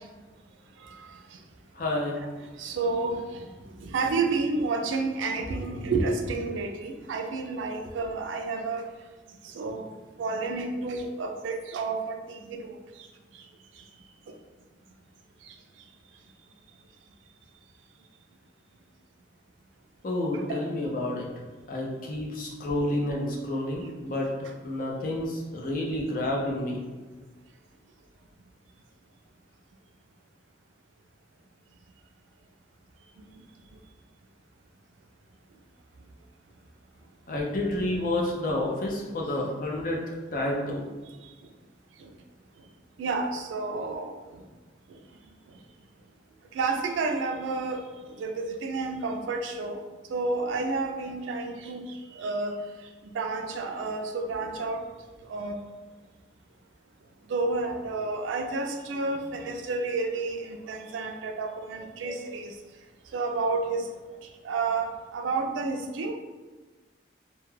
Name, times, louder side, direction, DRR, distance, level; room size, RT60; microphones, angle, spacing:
voice 1, 1.7-2.2 20.0-21.3 21.7-24.3 24.6-26.8 37.3-40.0 40.3-40.8, left 1 dB, 50° left, -2 dB, 0.5 m, -29 dB
voice 2, 2.6-3.4 3.8-8.8 9.4-9.8 10.2-12.7 20.5-20.6 43.0-44.1 46.5-47.8 48.2-49.8 50.1-51.9 52.1-52.6 53.1-54.8 55.3-55.6 57.3-62.5 63.1-63.9 64.4-66.1, right 3 dB, 85° right, 4 dB, 0.3 m, -30 dB
2.2 x 2.1 x 3.1 m, 1.3 s
head